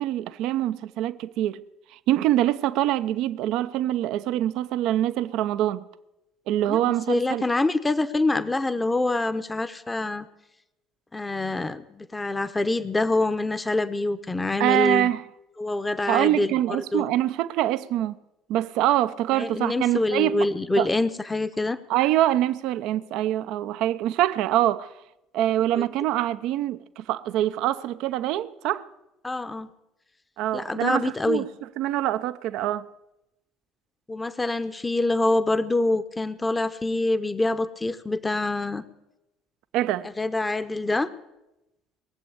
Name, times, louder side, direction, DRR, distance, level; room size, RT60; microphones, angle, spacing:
voice 1, 0.0-1.6 2.1-5.8 6.5-7.4 14.6-15.2 16.1-18.1 18.5-20.5 20.8-20.9 21.9-24.9 25.3-28.9 30.4-31.5 31.8-32.8 39.7-40.1, right 13 dB, 65° right, 0.6 m, -24 dB
voice 2, 6.7-10.3 11.1-15.1 15.6-16.5 16.9-17.1 19.3-21.8 25.7-25.8 29.2-29.7 30.5-31.5 34.1-38.8 40.0-41.1, left 2 dB, 15° left, 0.9 m, -25 dB
20.5 x 7.8 x 8.4 m
hypercardioid pair, 60°, 0 cm